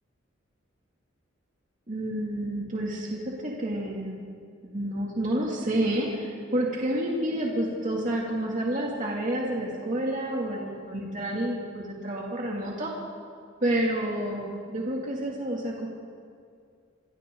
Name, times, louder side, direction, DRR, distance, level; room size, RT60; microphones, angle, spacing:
voice 1, 1.9-4.2 4.6-12.9 13.6-15.9, right 1 dB, 40° right, -3 dB, 2.7 m, -29 dB
26.5 x 26.0 x 3.9 m, 2.3 s
head